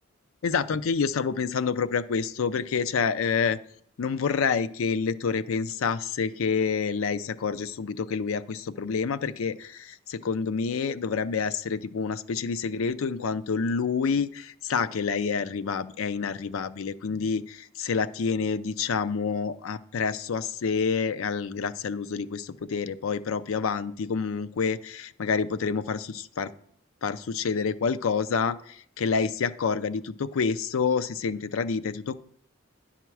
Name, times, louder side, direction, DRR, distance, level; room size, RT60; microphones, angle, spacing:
voice 1, 0.4-3.6 4.0-26.5 27.0-32.2, left 5 dB, 70° left, 14 dB, 0.4 m, -28 dB
11.0 x 5.8 x 4.6 m, 0.66 s
head